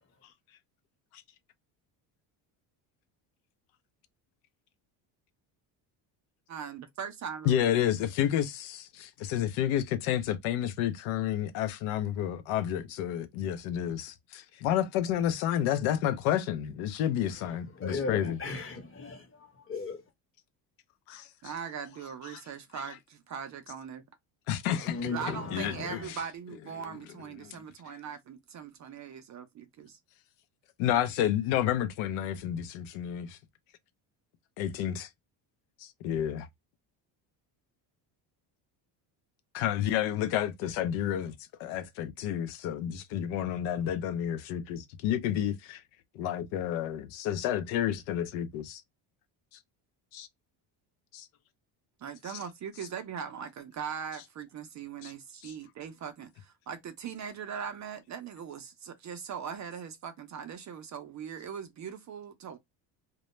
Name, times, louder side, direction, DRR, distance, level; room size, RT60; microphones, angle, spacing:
voice 1, 6.5-7.6 21.4-24.0 25.1-30.0 30.9-31.1 52.0-62.6, right 7 dB, 35° right, 0.4 m, -40 dB
voice 2, 7.4-18.4 21.1-21.3 22.7-22.9 24.5-25.0 25.5-26.2 27.4-27.6 30.8-33.4 34.6-35.1 35.8-36.5 39.5-41.3 41.6-45.8 46.1-48.8 50.1-50.3 51.1-51.3 55.0-55.1 55.4-55.5, left 10 dB, 75° left, 0.6 m, -30 dB
voice 3, 17.4-20.0 24.7-26.1, left 4 dB, 25° left, 0.9 m, -37 dB
2.2 x 2.0 x 2.9 m
supercardioid pair, 85°, 50 cm